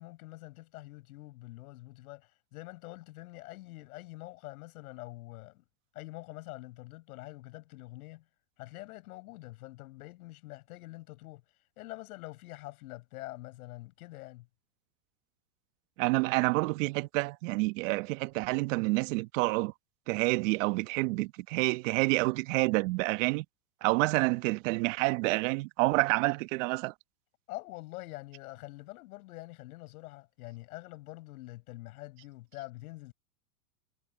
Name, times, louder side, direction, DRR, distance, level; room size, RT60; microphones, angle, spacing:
voice 1, 0.0-5.6 5.9-8.2 8.6-11.4 11.8-14.5 27.5-33.1, left 19 dB, 60° left, 7.8 m, -45 dB
voice 2, 16.0-19.7 20.1-23.4 23.8-26.9, right 24 dB, 50° right, 1.3 m, -28 dB
hypercardioid pair, 125°, 48 cm